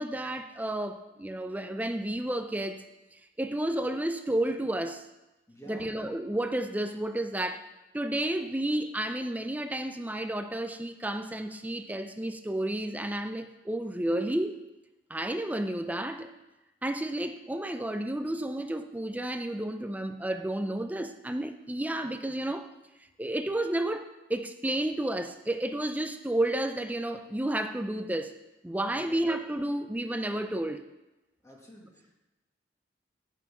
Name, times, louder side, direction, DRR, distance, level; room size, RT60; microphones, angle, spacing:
voice 1, 0.0-2.8 3.1-5.0 5.7-7.6 7.9-14.6 15.1-16.3 16.8-22.7 23.2-28.3 28.6-30.8, right 1 dB, 10° right, 8 dB, 0.5 m, -31 dB
voice 2, 5.5-5.9 28.9-29.2 31.4-32.1, equal, 15° left, -2 dB, 2.1 m, -50 dB
15.0 x 5.8 x 6.0 m, 1.0 s
head